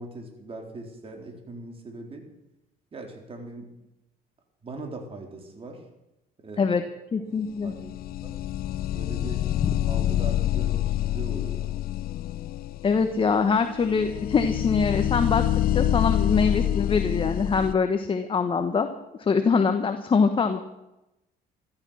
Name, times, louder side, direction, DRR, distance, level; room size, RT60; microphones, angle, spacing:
voice 1, 0.0-2.2 2.9-3.7 4.6-5.8 6.4-6.8 7.6-8.4 8.9-9.5 9.8-11.7, right 2 dB, 35° right, 3 dB, 3.7 m, -40 dB
voice 2, 7.1-7.7 12.8-15.4 15.7-18.9 19.2-20.6, left 5 dB, 30° left, 7 dB, 1.2 m, -23 dB
sound 1, 7.6-17.7, left 12 dB, 65° left, 0.5 m, -27 dB
16.0 x 13.0 x 6.4 m, 0.93 s
cardioid pair, 110°, 17 cm